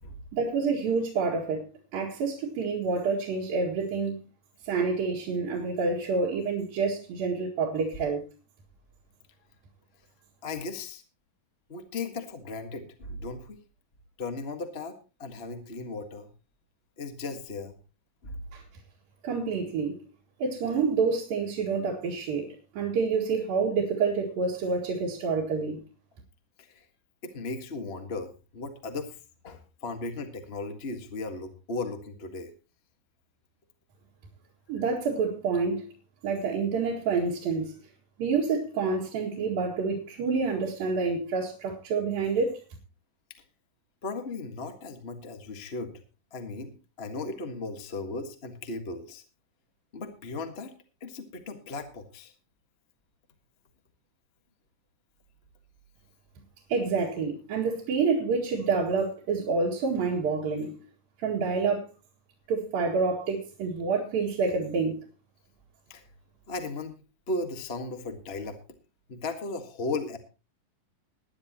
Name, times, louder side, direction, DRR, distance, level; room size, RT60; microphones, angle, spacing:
voice 1, 0.3-1.6 1.9-4.2 4.6-8.2 18.5-18.6 19.2-20.0 20.4-25.8 34.7-35.9 36.2-37.8 38.2-42.6 56.7-60.8 61.2-61.8 62.5-65.0, right 4 dB, 90° right, 3.8 m, -28 dB
voice 2, 10.4-11.0 11.7-13.6 14.2-16.3 17.0-17.7 18.2-18.4 26.7-26.8 27.2-29.2 29.4-32.5 44.0-45.9 46.3-46.7 47.0-49.2 49.9-50.7 51.0-52.3 65.9-66.0 66.5-66.9 67.3-68.6 69.1-70.2, left 3 dB, 40° left, 0.8 m, -36 dB
21.0 x 10.5 x 2.9 m
omnidirectional pair, 4.0 m